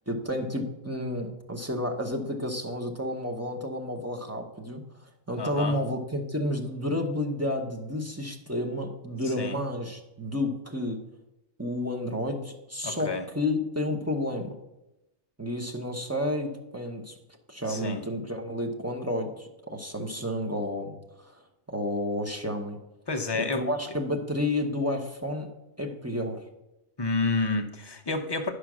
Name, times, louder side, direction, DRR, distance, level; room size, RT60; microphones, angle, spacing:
voice 1, 0.1-4.8 5.3-11.0 11.6-14.5 15.4-17.1 17.5-21.3 21.7-22.8 23.3-25.5 25.8-26.4, left 1 dB, 15° right, 2 dB, 0.8 m, -31 dB
voice 2, 5.4-5.8 9.2-9.6 12.8-13.2 17.7-18.0 23.1-23.6 27.0-28.5, left 3 dB, 30° left, 4 dB, 0.5 m, -29 dB
10.5 x 4.9 x 6.1 m, 0.95 s
omnidirectional pair, 1.2 m